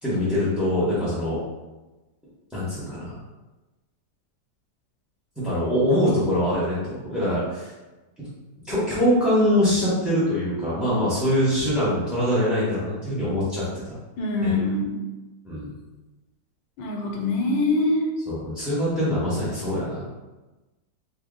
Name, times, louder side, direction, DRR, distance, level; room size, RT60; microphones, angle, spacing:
voice 1, 0.0-1.4 2.5-3.2 5.4-7.7 8.2-8.3 8.7-13.9 14.4-14.5 15.4-15.7 18.3-20.1, equal, ahead, -10 dB, 0.5 m, -23 dB
voice 2, 14.2-14.9 16.8-18.0, left 2 dB, 85° left, 0 dB, 1.3 m, -24 dB
2.8 x 2.6 x 3.6 m, 1.1 s
omnidirectional pair, 1.9 m